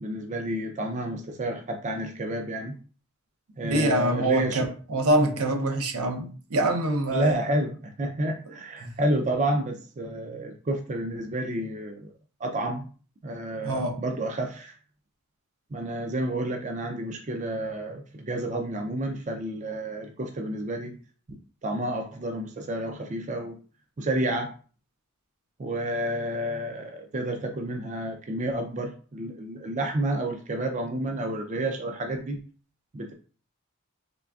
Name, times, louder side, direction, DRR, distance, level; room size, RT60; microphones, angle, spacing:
voice 1, 0.0-2.8 3.6-4.6 7.1-12.1 12.4-12.9 13.2-14.7 15.7-21.0 21.3-23.6 24.0-24.5 25.6-32.4 32.9-33.1, right 1 dB, 35° right, 0.4 m, -30 dB
voice 2, 3.6-7.4 8.8-8.9 13.6-14.0, right 1 dB, 80° right, 0.7 m, -25 dB
3.8 x 3.2 x 2.3 m
head